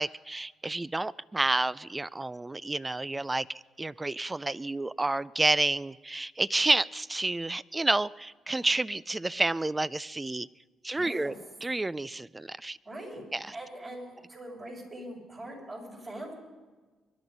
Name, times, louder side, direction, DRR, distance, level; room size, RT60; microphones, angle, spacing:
voice 1, 0.0-3.5 3.8-10.5 10.8-11.3 11.6-12.8 13.3-13.5, right 2 dB, 15° right, 20 dB, 0.4 m, -29 dB
voice 2, 10.9-11.3 12.8-13.2 13.5-16.3, right 1 dB, 35° right, -1 dB, 6.0 m, -42 dB
24.0 x 11.0 x 5.3 m, 1.3 s
cardioid pair, 90°, 0 cm